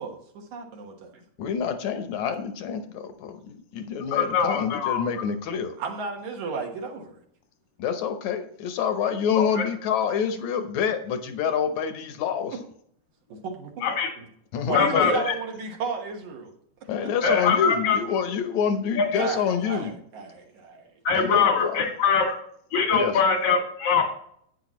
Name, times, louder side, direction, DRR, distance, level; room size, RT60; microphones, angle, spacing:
voice 1, 0.0-1.2 5.8-7.2 13.3-13.9 14.6-16.5 19.2-20.9, right 5 dB, 65° right, 2 dB, 2.5 m, -33 dB
voice 2, 1.4-5.7 7.8-12.6 14.5-15.3 16.9-19.9 21.2-21.9 22.9-23.1, left 7 dB, 70° left, 7 dB, 2.0 m, -27 dB
voice 3, 4.1-5.0 9.4-9.6 13.8-14.1 14.7-15.3 17.2-18.0 19.0-19.1 21.1-22.4 22.7-24.0, left 6 dB, 90° left, 2 dB, 3.7 m, -22 dB
10.5 x 9.1 x 3.0 m, 0.67 s
omnidirectional pair, 3.8 m